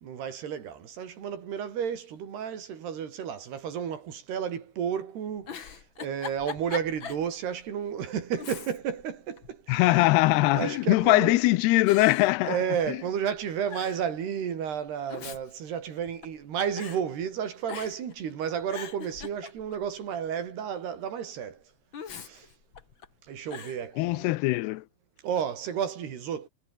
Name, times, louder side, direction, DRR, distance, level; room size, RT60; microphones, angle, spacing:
voice 1, 0.0-10.1 10.5-11.4 12.4-21.6 22.2-22.5 23.3-24.3 25.2-26.5, right 8 dB, 80° right, 5.3 m, -32 dB
Giggle, 5.3-7.3 7.7-7.8 8.3-9.0 9.4-10.2 10.9-11.3 11.9-13.1 13.4-13.5 13.7-14.1 14.9-16.4 16.8-17.0 17.7-18.1 18.5-19.9 21.9-23.1 23.5-23.8, left 7 dB, 40° left, 1.9 m, -41 dB
voice 2, 9.7-12.6 12.9-13.0 24.0-24.8, left 19 dB, 85° left, 2.8 m, -22 dB
omnidirectional pair, 4.6 m